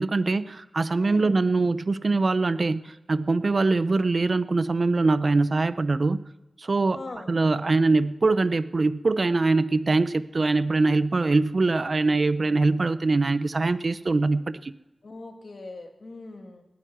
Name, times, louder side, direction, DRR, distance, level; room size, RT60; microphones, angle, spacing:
voice 1, 0.0-6.2 6.6-7.0 7.3-14.7, right 3 dB, 50° right, 14 dB, 0.5 m, -23 dB
voice 2, 1.0-1.4 6.9-7.3 15.0-16.6, left 2 dB, 55° left, 4 dB, 2.1 m, -41 dB
19.0 x 9.1 x 6.1 m, 1.0 s
wide cardioid pair, 80°, 0 cm